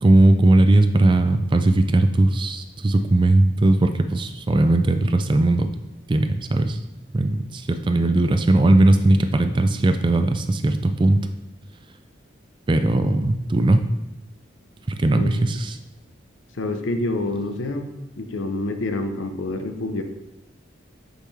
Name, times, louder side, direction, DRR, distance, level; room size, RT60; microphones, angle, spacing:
voice 1, 0.0-5.7 6.1-6.8 7.1-11.2 12.7-13.9 14.9-15.8, right 2 dB, 25° right, 8 dB, 0.3 m, -18 dB
voice 2, 16.5-17.9 18.2-20.0, left 2 dB, 80° left, 7 dB, 0.7 m, -27 dB
6.7 x 5.6 x 3.2 m, 1.0 s
head